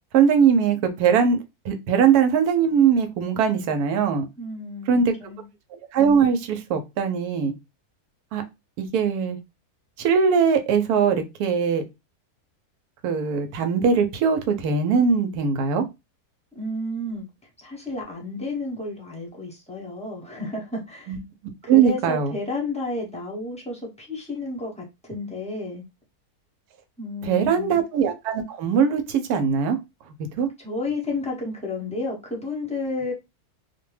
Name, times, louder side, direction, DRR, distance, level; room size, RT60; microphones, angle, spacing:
voice 1, 0.1-1.4 1.6-4.3 4.9-5.1 5.9-7.5 8.3-8.4 8.8-9.4 10.0-11.8 13.0-15.8 21.1-21.2 21.7-22.3 27.2-29.8 30.4-30.5, right 6 dB, 90° right, 1.1 m, -21 dB
voice 2, 4.4-5.5 16.5-17.2 17.6-21.1 21.6-25.8 27.0-27.8 30.6-33.1, left 2 dB, 5° left, 0.5 m, -31 dB
2.6 x 2.1 x 3.1 m
omnidirectional pair, 1.6 m